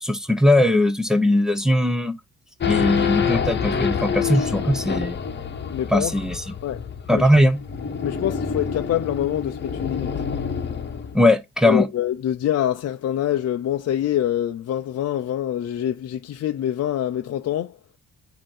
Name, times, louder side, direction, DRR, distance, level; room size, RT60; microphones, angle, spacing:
voice 1, 0.0-2.1 2.7-5.2 5.9-6.4 7.1-7.6 11.1-11.9, left 1 dB, ahead, 0.9 m, -19 dB
Race car auto racing / Idling / Accelerating revving vroom, 2.6-11.2, left 7 dB, 35° left, 1.2 m, -27 dB
voice 2, 5.7-6.1 6.6-6.9 7.1-7.3 8.0-10.1 11.6-17.8, left 11 dB, 55° left, 0.6 m, -25 dB
8.7 x 2.9 x 5.5 m
cardioid pair, 90°, 30 cm